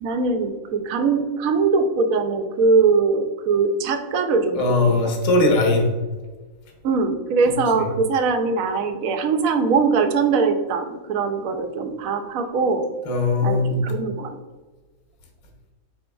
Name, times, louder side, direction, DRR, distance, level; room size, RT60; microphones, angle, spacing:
voice 1, 0.0-4.9 6.8-12.9 13.4-14.4, right 4 dB, 75° right, 7 dB, 1.0 m, -21 dB
voice 2, 4.5-5.9 13.1-13.8, left 2 dB, 30° left, 1 dB, 0.7 m, -19 dB
5.0 x 4.4 x 2.3 m, 1.3 s
omnidirectional pair, 1.5 m